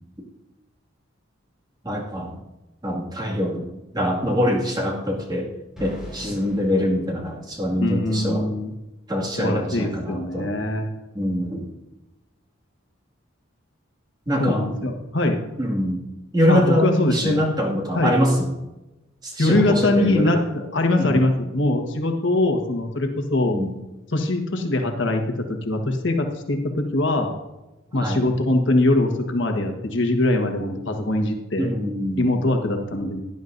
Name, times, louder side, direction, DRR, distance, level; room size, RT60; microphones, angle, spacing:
voice 1, 1.8-2.4 2.8-3.7 3.9-5.5 5.8-8.5 9.1-10.5 11.1-11.7 14.3-14.7 15.6-16.1 16.3-18.5 19.2-20.4 21.0-21.2 23.4-23.7 28.0-28.3 31.6-32.3, equal, 20° right, -2 dB, 2.1 m, -24 dB
sound 1, 5.8-7.9, left 1 dB, 5° right, 4.8 m, -41 dB
voice 2, 7.8-8.7 9.4-10.9 14.4-15.4 16.5-17.4 17.9-18.1 19.4-23.6 24.1-27.3 27.9-31.7 32.2-33.2, left 2 dB, 65° left, 3 dB, 1.4 m, -22 dB
17.5 x 11.0 x 2.6 m, 1.0 s
head